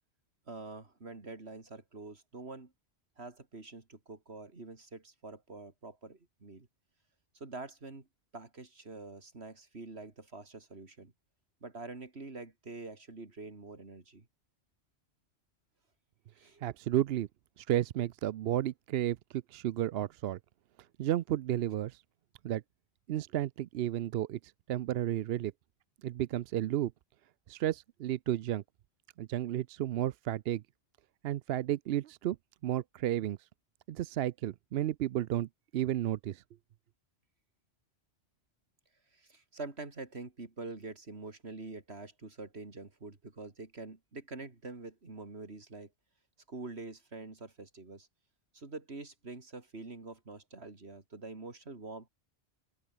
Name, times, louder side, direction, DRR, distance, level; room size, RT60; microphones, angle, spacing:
voice 1, 0.5-2.7 3.2-6.7 7.3-8.1 8.3-11.1 11.6-14.3 16.4-16.6 39.1-45.9 46.5-48.1 48.5-52.1, right 3 dB, 90° right, 3.2 m, -46 dB
voice 2, 16.6-17.3 17.6-20.4 21.0-22.0 22.4-22.6 23.1-25.5 26.0-26.9 27.5-28.6 29.2-30.6 31.2-32.4 32.6-33.4 33.9-36.4, right 12 dB, 75° right, 0.8 m, -32 dB
open air
omnidirectional pair, 1.1 m